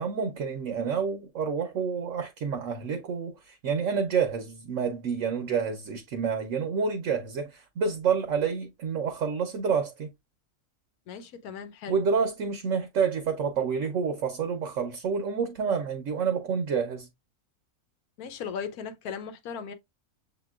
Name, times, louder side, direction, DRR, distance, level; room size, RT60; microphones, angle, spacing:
voice 1, 0.0-10.1 11.9-17.1, right 6 dB, 65° right, 1.0 m, -28 dB
voice 2, 11.1-12.0 18.2-19.7, left 6 dB, 80° left, 1.2 m, -37 dB
6.9 x 2.9 x 2.3 m
omnidirectional pair, 1.6 m